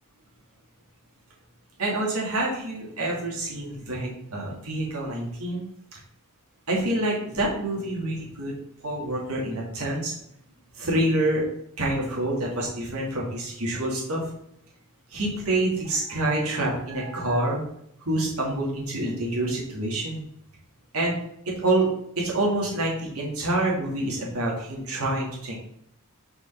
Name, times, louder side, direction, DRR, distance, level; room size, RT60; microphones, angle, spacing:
voice 1, 1.8-5.6 5.9-6.0 6.7-8.6 8.8-10.1 10.7-11.5 11.8-14.3 15.1-17.6 18.0-20.2 20.9-21.2 21.6-21.9 22.2-25.5, right 1 dB, 90° right, -3 dB, 2.6 m, -27 dB
5.7 x 4.9 x 5.8 m, 0.75 s
head